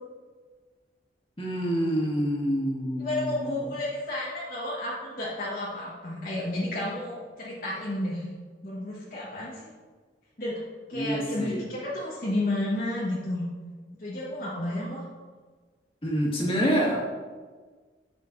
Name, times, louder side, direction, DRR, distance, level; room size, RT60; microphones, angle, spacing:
voice 1, 1.4-3.6 10.9-11.6 16.0-17.0, equal, 30° left, -5 dB, 1.9 m, -27 dB
voice 2, 3.0-8.3 8.6-9.6 10.4-10.6 10.9-13.4 14.0-15.0, left 1 dB, 50° left, -6 dB, 1.3 m, -31 dB
9.4 x 6.6 x 2.6 m, 1.4 s
head